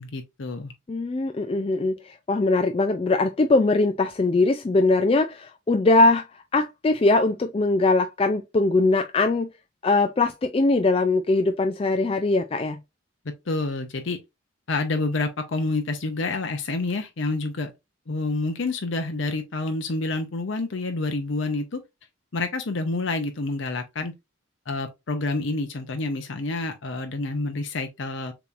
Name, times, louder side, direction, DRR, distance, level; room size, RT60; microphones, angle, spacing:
voice 1, 0.0-0.7 13.2-14.2 14.7-17.7 18.1-21.8 22.3-24.1 24.7-28.3, left 3 dB, 70° left, 0.6 m, -28 dB
voice 2, 0.9-9.5 9.8-12.8, left 2 dB, 30° left, 0.3 m, -21 dB
6.9 x 3.0 x 2.5 m
head